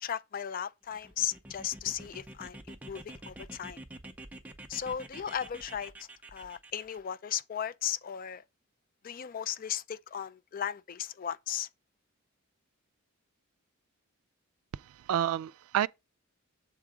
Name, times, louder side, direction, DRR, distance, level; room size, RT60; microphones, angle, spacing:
voice 1, 0.0-3.8 4.7-8.4 9.0-11.7, left 9 dB, 40° left, 0.3 m, -36 dB
sound 1, 0.9-7.0, right 1 dB, 5° right, 0.6 m, -48 dB
voice 2, 14.7-15.9, right 10 dB, 90° right, 0.3 m, -30 dB
7.6 x 3.6 x 4.9 m
head